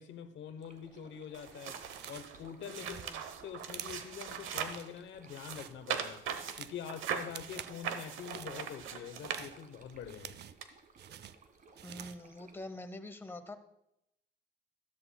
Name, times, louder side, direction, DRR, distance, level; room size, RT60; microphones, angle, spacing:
voice 1, 0.0-1.8 2.1-3.0 3.4-6.2 6.6-10.4, left 8 dB, 70° left, 10 dB, 0.9 m, -45 dB
sound 1, 0.6-12.7, right 4 dB, 45° right, 1.4 m, -61 dB
sound 2, 1.3-4.9 5.3-9.9 10.6-10.7, right 8 dB, 85° right, 0.9 m, -40 dB
sound 3, 1.9-2.4 2.7-4.1 4.5-4.9 5.3-5.7 6.1-6.8 7.2-7.8 8.1-8.5 9.0-10.6 11.0-12.3, right 10 dB, 60° right, 0.5 m, -48 dB
voice 2, 2.8-3.2 11.8-13.5, left 2 dB, 10° left, 8 dB, 0.8 m, -45 dB
13.0 x 12.5 x 2.2 m, 0.84 s
cardioid pair, 90°, 20 cm